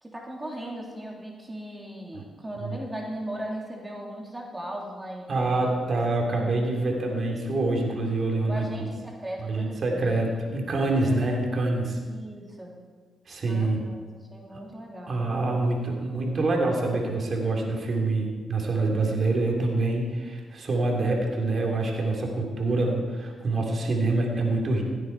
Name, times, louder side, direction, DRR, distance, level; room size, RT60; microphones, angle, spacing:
voice 1, 0.0-5.8 6.4-6.5 8.5-10.4 11.0-11.2 12.1-12.8 13.5-14.0 14.3-15.2, right 1 dB, 20° right, -1 dB, 2.9 m, -38 dB
voice 2, 5.3-8.6 9.4-12.0 13.3-13.8 15.1-24.8, right 2 dB, 55° right, 0 dB, 3.3 m, -26 dB
16.5 x 9.2 x 4.7 m, 1.5 s
supercardioid pair, 55°, 0 cm